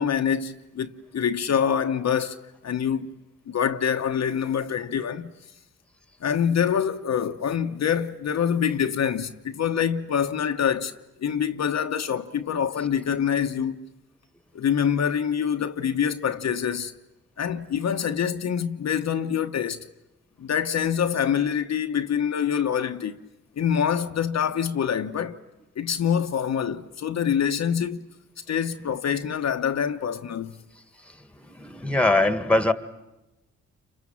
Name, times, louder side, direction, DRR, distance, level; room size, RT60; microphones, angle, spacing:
voice 1, 0.0-2.4 2.6-3.1 3.5-5.3 6.2-10.9 11.2-13.8 14.5-16.9 17.4-19.9 20.4-23.2 23.6-25.4 25.8-28.1 28.5-30.6, left 8 dB, 60° left, 1.0 m, -25 dB
voice 2, 31.5-32.7, left 2 dB, 5° left, 1.7 m, -21 dB
29.5 x 25.5 x 7.3 m
supercardioid pair, 50°, 31 cm